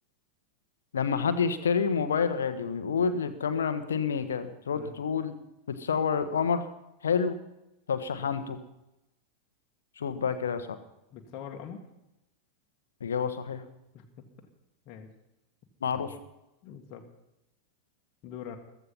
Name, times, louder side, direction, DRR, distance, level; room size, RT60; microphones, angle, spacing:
voice 1, 0.9-5.3 5.7-6.7 7.0-7.4 7.9-8.6 10.0-10.8 13.0-13.6 15.8-16.1, left 6 dB, 65° left, 11 dB, 1.4 m, -28 dB
voice 2, 11.1-11.8 13.9-14.0 14.9-15.1 16.6-17.0 18.2-18.6, left 8 dB, 40° left, 2 dB, 2.0 m, -42 dB
15.0 x 14.0 x 5.7 m, 0.89 s
figure-of-eight pair, 90°, 0 cm